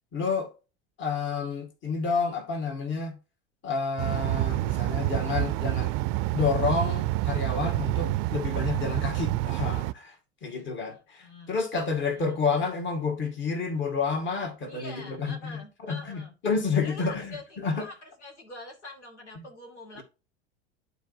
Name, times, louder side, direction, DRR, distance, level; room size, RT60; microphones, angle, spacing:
voice 1, 0.1-0.5 1.0-3.2 3.6-5.9 6.3-10.2 10.4-17.9 19.4-19.5, left 4 dB, 35° left, 2.1 m, -30 dB
sound 1, 4.0-9.9, right 17 dB, 45° right, 0.5 m, -28 dB
voice 2, 10.9-11.5 12.1-12.4 14.6-16.3 16.8-20.0, left 2 dB, 90° left, 2.2 m, -45 dB
11.5 x 4.2 x 2.7 m
hypercardioid pair, 85°, 34 cm